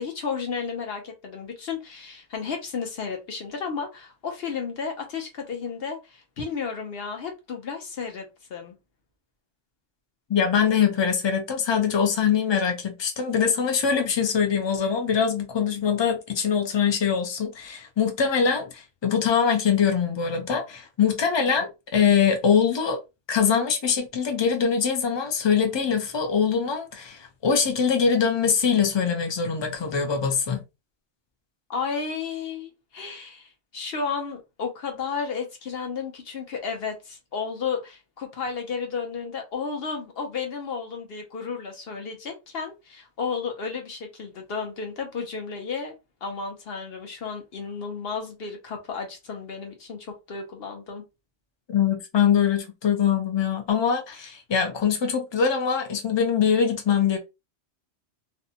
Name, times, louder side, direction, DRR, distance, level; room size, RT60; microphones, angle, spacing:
voice 1, 0.0-8.7 31.7-46.0 46.2-51.0, left 5 dB, 60° left, 0.9 m, -33 dB
voice 2, 10.3-23.0 23.3-30.6 51.7-57.2, left 7 dB, 40° left, 0.4 m, -23 dB
2.6 x 2.1 x 2.7 m
omnidirectional pair, 1.2 m